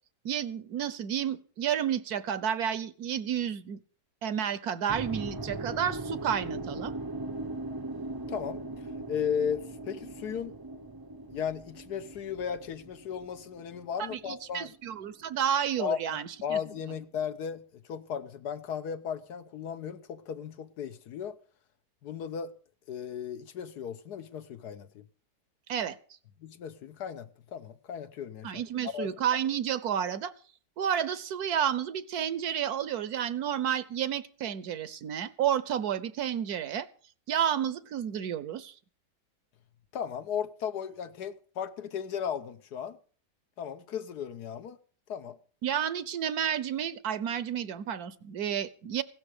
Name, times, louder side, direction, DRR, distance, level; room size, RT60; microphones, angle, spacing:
voice 1, 0.2-3.8 4.2-6.9 14.1-16.6 25.7-26.0 28.4-30.3 30.8-36.9 37.3-38.7 45.6-49.0, right 9 dB, 70° right, 1.3 m, -31 dB
sound 1, 4.9-15.0, right 2 dB, 25° right, 0.5 m, -39 dB
voice 2, 8.3-10.6 11.3-14.7 15.8-21.4 22.0-22.5 22.9-25.0 26.4-28.6 28.9-29.1 39.9-43.0 43.6-44.8 45.1-45.4, left 8 dB, 75° left, 1.5 m, -36 dB
16.5 x 12.5 x 4.9 m
omnidirectional pair, 1.8 m